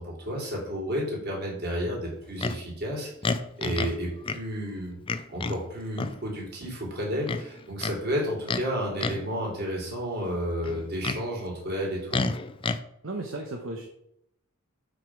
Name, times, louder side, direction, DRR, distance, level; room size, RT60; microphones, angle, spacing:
voice 1, 0.0-5.0 5.3-12.2, equal, 50° right, -2 dB, 3.2 m, -32 dB
Livestock farm animals working animals, 2.4-2.6 3.2-4.0 4.2-4.4 5.1-5.6 5.9-6.2 7.2-8.0 8.4-8.7 9.0-9.3 10.6-11.2 12.1-12.8, left 3 dB, 25° left, 0.4 m, -30 dB
voice 2, 13.0-13.9, right 2 dB, 70° right, 2 dB, 1.0 m, -34 dB
7.9 x 6.3 x 4.7 m, 0.78 s
head